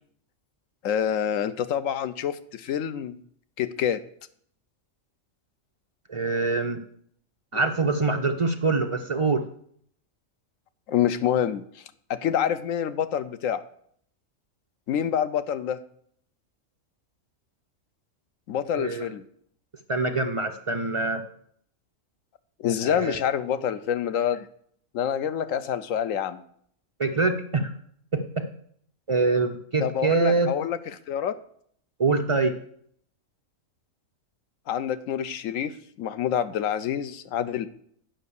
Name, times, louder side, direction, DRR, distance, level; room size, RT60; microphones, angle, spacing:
voice 1, 0.8-3.2 3.6-4.0 10.9-11.6 12.1-13.6 14.9-15.8 18.5-19.2 22.6-24.5 24.9-26.4 29.8-30.8 31.1-31.3 34.7-37.7, left 9 dB, 80° left, 12 dB, 1.0 m, -27 dB
voice 2, 6.1-6.8 7.5-9.4 18.7-19.1 19.9-21.2 22.8-23.2 27.0-27.7 28.1-28.5 29.1-30.5 32.0-32.6, right 3 dB, 45° right, 4 dB, 0.4 m, -24 dB
9.0 x 5.5 x 6.8 m, 0.64 s
omnidirectional pair, 1.4 m